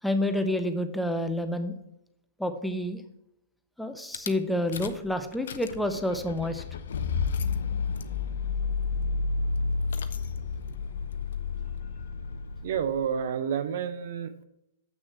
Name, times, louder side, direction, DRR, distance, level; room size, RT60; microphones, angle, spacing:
voice 1, 0.0-1.7 2.4-3.0 3.8-6.6, left 1 dB, ahead, 8 dB, 0.6 m, -29 dB
Rattle / Car / Engine starting, 4.1-4.3 4.7-5.1 5.3-13.1, left 4 dB, 55° left, 0.6 m, -31 dB
voice 2, 12.6-14.4, right 7 dB, 50° right, 11 dB, 0.5 m, -30 dB
7.6 x 6.2 x 4.5 m, 0.85 s
figure-of-eight pair, 110°, 0 cm